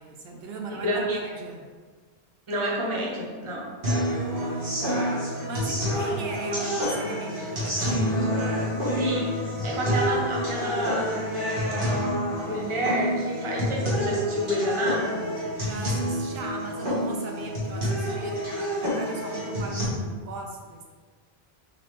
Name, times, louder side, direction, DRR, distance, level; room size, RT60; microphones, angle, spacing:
voice 1, 0.0-1.7 4.1-8.1 15.6-20.8, right 3 dB, 80° right, 1 dB, 0.8 m, -39 dB
voice 2, 0.7-1.2 2.5-3.7 8.9-11.3 12.4-15.3, equal, 35° right, -3 dB, 0.8 m, -29 dB
sound 1, 3.8-19.8, equal, 55° right, 1.5 m, -28 dB
3.8 x 3.7 x 3.1 m, 1.5 s
omnidirectional pair, 1.0 m